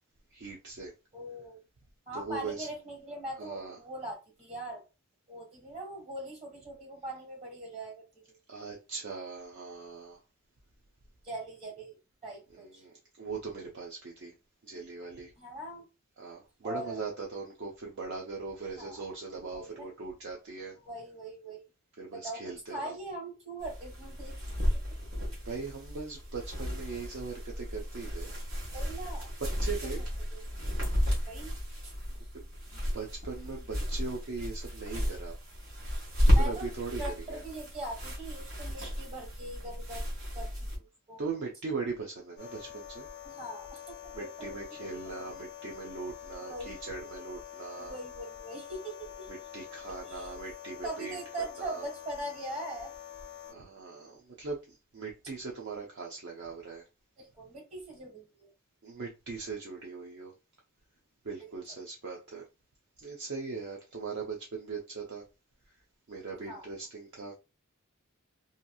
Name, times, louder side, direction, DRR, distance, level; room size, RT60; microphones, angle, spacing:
voice 1, 0.3-0.9 2.1-2.7 3.4-3.8 8.5-10.2 12.5-14.3 14.6-15.3 16.2-20.8 22.0-22.9 25.4-28.3 29.4-30.0 32.3-32.4 32.7-35.3 36.3-37.4 41.2-43.1 44.1-47.9 49.3-51.2 51.6-51.9 53.5-56.8 58.8-60.3 61.2-62.4 63.0-65.2 66.1-67.3, right 4 dB, 55° right, 0.5 m, -40 dB
voice 2, 1.1-1.6 2.1-4.8 5.3-8.4 11.2-12.8 15.4-15.8 16.6-17.0 18.8-19.1 19.5-19.9 20.8-21.6 22.1-24.3 24.6-24.9 28.7-29.3 29.6-30.0 30.3-30.5 31.3-31.5 31.8-31.9 36.3-36.7 37.0-40.0 40.3-41.2 43.2-45.5 46.3-46.8 47.7-49.6 50.1-50.3 50.8-52.9 57.2-58.5 61.4-61.5 66.4-66.7, right 1 dB, 30° right, 1.5 m, -42 dB
sound 1, 23.6-40.8, equal, 70° right, 1.3 m, -33 dB
sound 2, 42.4-53.5, left 9 dB, 50° left, 0.4 m, -46 dB
2.8 x 2.6 x 2.3 m
head